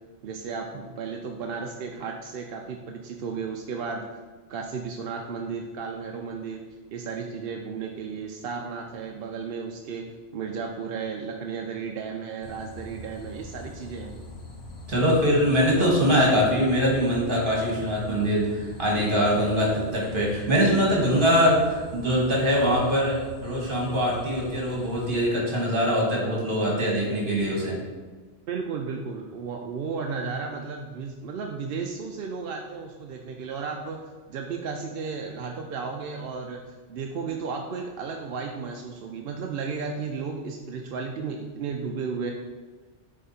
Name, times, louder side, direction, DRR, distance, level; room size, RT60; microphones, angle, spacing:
voice 1, 0.2-4.0 4.5-6.6 6.9-10.1 10.3-14.1 28.5-34.0 34.3-42.3, right 5 dB, 60° right, 2 dB, 0.6 m, -34 dB
sound 1, 12.4-25.2, left 1 dB, 60° left, 1.1 m, -42 dB
voice 2, 14.9-23.2 23.4-27.8, equal, 45° right, -3 dB, 1.9 m, -23 dB
7.3 x 3.3 x 4.2 m, 1.4 s
omnidirectional pair, 1.2 m